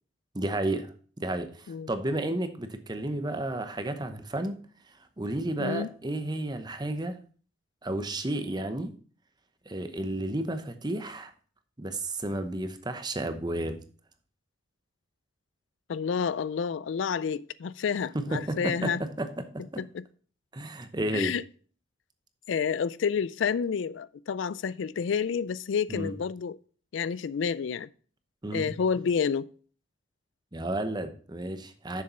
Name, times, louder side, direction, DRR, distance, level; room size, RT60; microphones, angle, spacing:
voice 1, 0.3-4.6 5.2-7.2 7.8-8.9 9.7-11.3 11.8-13.8 18.1-19.3 19.5-19.8 20.5-21.3 25.9-26.1 28.4-28.7 30.5-32.0, right 1 dB, 20° right, 0.8 m, -32 dB
voice 2, 15.9-19.0 19.8-20.0 21.1-21.4 22.5-26.6 26.9-27.9 28.5-29.5, left 6 dB, 75° left, 0.4 m, -29 dB
7.0 x 6.6 x 5.4 m
head